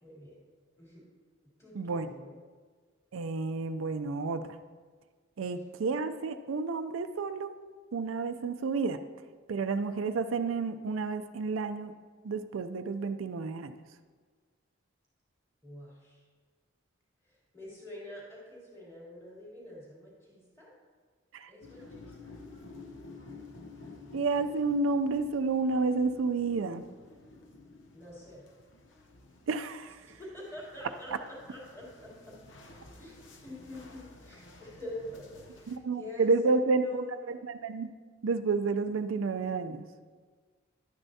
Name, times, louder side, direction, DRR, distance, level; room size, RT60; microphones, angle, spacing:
voice 1, 0.0-0.4 0.8-1.0 1.6-2.3 15.6-16.2 17.2-20.7 21.5-22.3 27.9-28.4 30.0-32.3 33.0-37.4, equal, 15° left, -6 dB, 2.9 m, -46 dB
voice 2, 1.7-2.1 3.1-4.4 5.4-7.5 7.9-9.0 9.5-11.9 12.2-13.7 21.3-21.5 24.1-26.8 29.5-30.0 35.7-37.4 37.6-37.9 38.2-39.9, right 4 dB, 90° right, 9 dB, 0.4 m, -30 dB
sound 1, 21.6-35.8, left 3 dB, 70° left, 0.8 m, -52 dB
11.5 x 9.0 x 2.7 m, 1.5 s
head